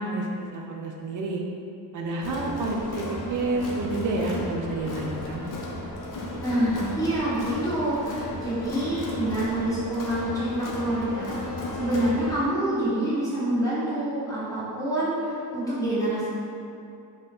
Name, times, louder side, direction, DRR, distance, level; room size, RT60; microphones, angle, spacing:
voice 1, 0.0-1.4 1.9-5.5, right 2 dB, 50° right, 0 dB, 0.5 m, -29 dB
Crowd, 2.2-12.5, left 1 dB, 50° left, 0.6 m, -34 dB
voice 2, 6.4-11.4 11.7-16.3, right 1 dB, 10° left, -11 dB, 1.2 m, -27 dB
2.8 x 2.2 x 3.4 m, 2.6 s
cardioid pair, 85°, 41 cm